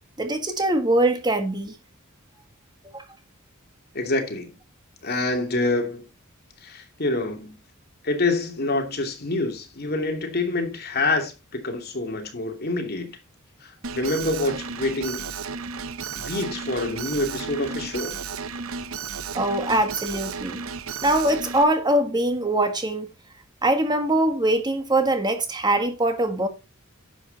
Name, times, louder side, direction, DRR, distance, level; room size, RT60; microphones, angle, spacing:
voice 1, 0.2-1.7 2.9-3.0 19.3-20.6 21.0-23.1 23.6-26.5, right 1 dB, 20° right, 1.5 m, -22 dB
voice 2, 3.9-4.6 5.0-6.1 6.6-7.5 8.0-13.1 13.6-15.4 16.2-18.2, left 2 dB, 50° left, 2.7 m, -26 dB
Alarm, 13.8-21.6, right 5 dB, 75° right, 0.9 m, -33 dB
10.5 x 7.7 x 4.0 m
head